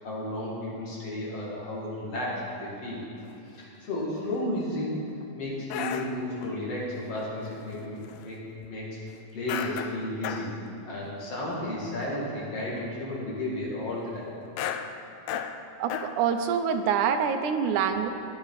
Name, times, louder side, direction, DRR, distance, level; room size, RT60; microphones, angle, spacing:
voice 1, 0.0-3.1 3.5-5.0 5.4-9.0 9.3-10.5 10.9-14.3, left 1 dB, 55° left, -5 dB, 3.4 m, -33 dB
sound 1, 3.2-3.3 3.8-4.4 4.8-5.2 5.7-6.6 7.5-8.3 8.6-8.7 9.5-10.6 11.0-11.1 11.4-11.6 11.9-12.3 12.6-12.8 14.5-16.5 16.8-16.9, left 8 dB, 80° left, 1.5 m, -35 dB
voice 2, 15.8-18.1, right 7 dB, 90° right, 6 dB, 2.2 m, -26 dB
15.0 x 10.5 x 4.1 m, 2.8 s
omnidirectional pair, 3.4 m